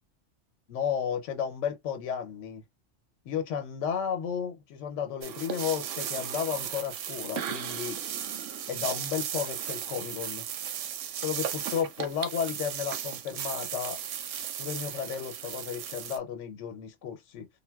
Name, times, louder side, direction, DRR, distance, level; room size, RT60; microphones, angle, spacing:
voice 1, 0.7-2.6 3.3-8.0 8.7-10.5 11.2-14.0 14.6-17.5, left 8 dB, 85° left, 1.0 m, -33 dB
sound 1, 5.2-16.2, right 9 dB, 90° right, 1.0 m, -36 dB
3.9 x 2.2 x 2.2 m
omnidirectional pair, 1.2 m